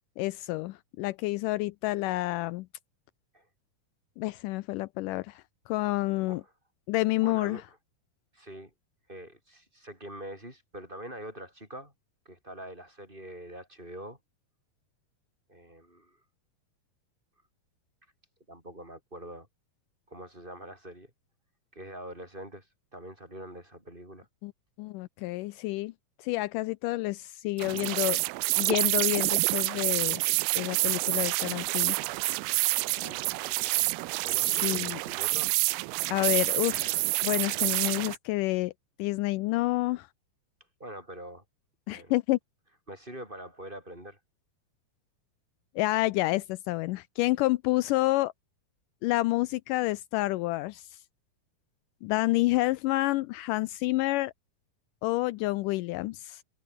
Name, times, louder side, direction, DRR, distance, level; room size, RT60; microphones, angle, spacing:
voice 1, 0.2-2.7 4.2-6.4 6.9-7.6 24.4-24.5 24.8-25.9 26.2-28.2 28.6-30.2 30.6-32.0 34.5-35.0 36.1-38.7 39.0-40.1 41.9-42.4 45.8-48.3 49.0-51.0 52.0-54.3 55.0-56.4, left 19 dB, 90° left, 1.8 m, -29 dB
voice 2, 7.2-7.8 8.3-8.7 9.1-11.9 12.3-14.2 15.5-16.2 18.5-19.5 20.1-21.1 21.7-22.7 22.9-24.3 33.0-33.8 34.2-35.6 40.8-41.4 41.9-42.1 42.9-44.2, right 1 dB, 10° right, 5.8 m, -44 dB
sound 1, 27.6-38.2, right 22 dB, 85° right, 2.5 m, -28 dB
omnidirectional pair, 4.4 m